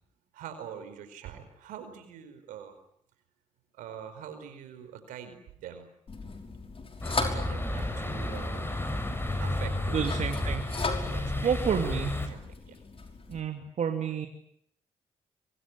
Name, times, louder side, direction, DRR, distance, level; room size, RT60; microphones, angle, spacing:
voice 1, 0.3-2.8 3.7-5.9 7.1-8.6 9.4-10.1 11.0-12.8, right 8 dB, 85° right, 9 dB, 4.9 m, -44 dB
sound 1, 6.1-13.4, left 4 dB, 45° left, 5.6 m, -38 dB
sound 2, 7.0-12.3, left 1 dB, 15° left, 6.7 m, -32 dB
voice 2, 9.9-10.7 11.4-12.2 13.3-14.3, right 7 dB, 60° right, 4 dB, 2.8 m, -29 dB
24.0 x 23.5 x 10.0 m, 0.71 s
supercardioid pair, 50°, 13 cm